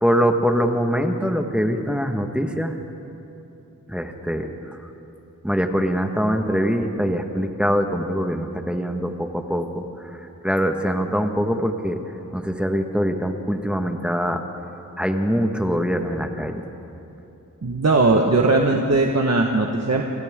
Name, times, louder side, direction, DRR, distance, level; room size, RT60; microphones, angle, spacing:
voice 1, 0.0-2.7 3.9-4.9 5.4-12.0 12.3-14.4 15.0-16.6 18.7-18.8, equal, 5° right, 4 dB, 1.6 m, -23 dB
voice 2, 17.6-20.0, right 3 dB, 50° right, 1 dB, 1.5 m, -19 dB
27.0 x 26.5 x 3.8 m, 3.0 s
wide cardioid pair, 65°, 34 cm